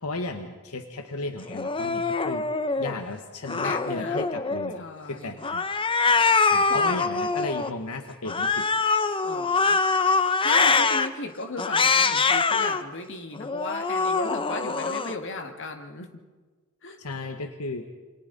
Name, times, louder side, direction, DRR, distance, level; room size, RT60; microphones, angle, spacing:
voice 1, 0.0-2.5 2.8-5.6 6.5-8.7 17.0-17.9, left 2 dB, 85° left, 7 dB, 1.3 m, -35 dB
Cat, 1.5-2.9 3.4-4.8 5.4-7.7 8.2-11.1 11.6-12.8 13.3-15.1, left 4 dB, 25° left, 0.7 m, -24 dB
voice 2, 3.6-4.2 4.7-5.4 6.6-7.0 9.2-9.8 10.4-16.1 16.8-17.0, left 2 dB, 60° left, 5 dB, 2.0 m, -36 dB
28.5 x 24.5 x 4.0 m, 1.4 s
head